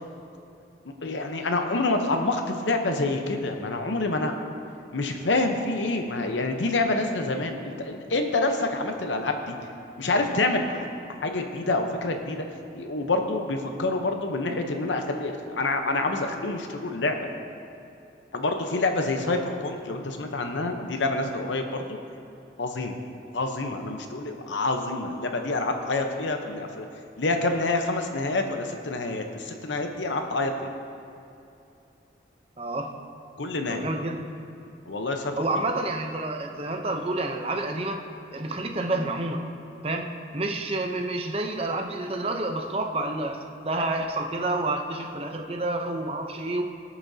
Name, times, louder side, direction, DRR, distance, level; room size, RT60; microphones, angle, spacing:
voice 1, 1.0-4.3 4.9-9.6 10.0-10.8 11.2-12.4 12.7-17.3 18.3-22.0 22.6-23.0 23.3-26.9 27.2-30.7 33.4-33.9 34.9-35.3, left 2 dB, 80° left, 5 dB, 0.8 m, -27 dB
voice 2, 32.6-32.9 33.7-34.3 35.4-38.0 38.3-39.5 39.8-46.6, right 2 dB, 30° right, 4 dB, 0.7 m, -29 dB
20.0 x 7.1 x 2.8 m, 2.7 s
head